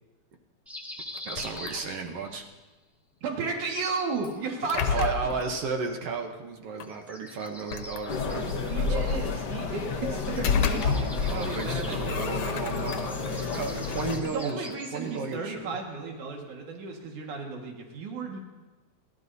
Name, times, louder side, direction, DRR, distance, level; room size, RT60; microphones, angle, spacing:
sound 1, 0.7-2.4 3.8-4.9 6.8-9.8 10.0-15.2, left 1 dB, ahead, 0.6 m, -45 dB
sound 2, 1.1-2.3 4.2-5.6 6.8-6.9 7.5-8.6 10.1-11.4 11.7-13.3 13.8-15.4, left 8 dB, 80° left, 2.1 m, -35 dB
voice 1, 1.2-2.5 4.9-9.3 10.8-15.8, right 4 dB, 60° right, 3 dB, 1.8 m, -34 dB
voice 2, 3.2-5.1 8.7-12.5 14.2-18.4, right 4 dB, 80° right, 1 dB, 3.2 m, -34 dB
sound 3, 8.1-14.2, left 5 dB, 55° left, 1.2 m, -29 dB
29.0 x 13.0 x 2.7 m, 1.2 s
omnidirectional pair, 3.4 m